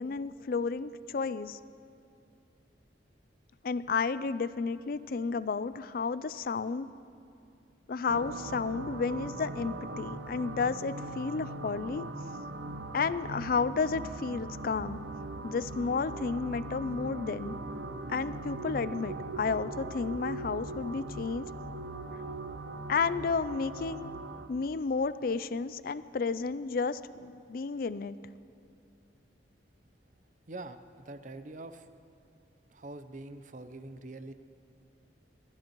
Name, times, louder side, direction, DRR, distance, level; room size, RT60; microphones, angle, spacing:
voice 1, 0.0-1.6 3.6-6.9 7.9-12.0 12.9-15.0 15.4-17.6 18.1-21.5 22.9-24.1 24.5-28.2, left 4 dB, 50° left, 15 dB, 0.4 m, -32 dB
sound 1, 8.1-24.5, right 2 dB, 75° right, 0.8 m, -40 dB
voice 2, 30.5-31.9 32.7-34.3, right 2 dB, 40° right, 10 dB, 0.6 m, -44 dB
27.0 x 13.0 x 3.1 m, 2.7 s
head